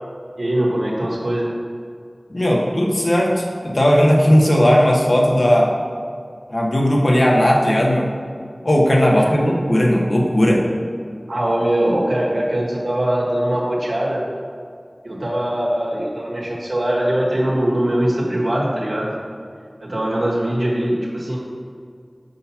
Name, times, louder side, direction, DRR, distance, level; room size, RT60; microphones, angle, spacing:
voice 1, 0.4-1.5 9.1-9.2 11.3-14.2 15.0-19.1 19.8-21.4, right 1 dB, 90° right, -5 dB, 1.3 m, -21 dB
voice 2, 2.3-5.7 6.5-8.1 8.6-10.6, equal, 65° left, -2 dB, 0.9 m, -16 dB
6.3 x 2.8 x 5.5 m, 2.2 s
wide cardioid pair, 45°, 0 cm